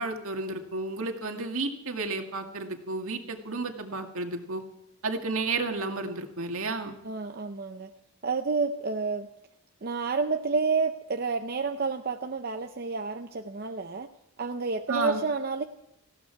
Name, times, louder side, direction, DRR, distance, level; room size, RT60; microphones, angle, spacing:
voice 1, 0.0-4.6 5.0-6.9 14.9-15.2, right 3 dB, 65° right, 4 dB, 2.1 m, -32 dB
voice 2, 7.0-7.9 8.2-9.3 9.8-14.1 14.4-15.6, right 4 dB, 45° right, 6 dB, 0.7 m, -29 dB
19.0 x 15.5 x 4.7 m, 0.82 s
head